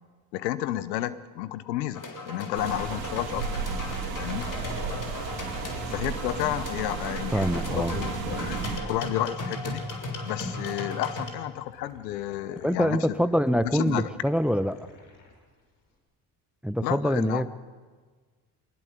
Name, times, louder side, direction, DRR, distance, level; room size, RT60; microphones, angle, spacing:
voice 1, 0.3-3.5 3.9-4.5 5.8-9.8 10.2-13.2 13.6-14.1 16.8-17.5, left 14 dB, 85° left, 16 dB, 0.9 m, -31 dB
sound 1, 1.9-11.3, left 2 dB, 40° left, 3.7 m, -37 dB
sound 2, 2.5-8.8, right 5 dB, 85° right, 2.7 m, -33 dB
Liquid, 4.2-15.4, left 3 dB, 65° left, 5.1 m, -50 dB
voice 2, 7.3-7.9 12.6-14.9 16.6-17.5, equal, ahead, 14 dB, 0.9 m, -25 dB
22.0 x 19.5 x 6.8 m, 1.5 s
hypercardioid pair, 55°, 49 cm